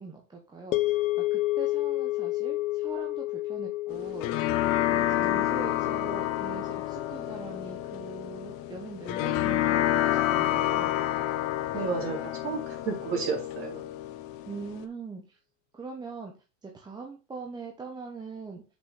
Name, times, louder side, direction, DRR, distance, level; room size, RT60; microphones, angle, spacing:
voice 1, 0.0-4.5 4.8-10.9 14.5-15.4 15.7-16.3 16.6-18.6, right 4 dB, 10° right, 0 dB, 1.0 m, -42 dB
sound 1, 0.7-9.0, left 17 dB, 85° left, 0.7 m, -32 dB
sound 2, 3.9-14.8, left 13 dB, 35° left, 0.6 m, -29 dB
voice 2, 5.1-5.5 11.7-13.8, right 5 dB, 35° right, -1 dB, 3.6 m, -33 dB
6.3 x 4.9 x 4.8 m, 0.32 s
supercardioid pair, 140°, 39 cm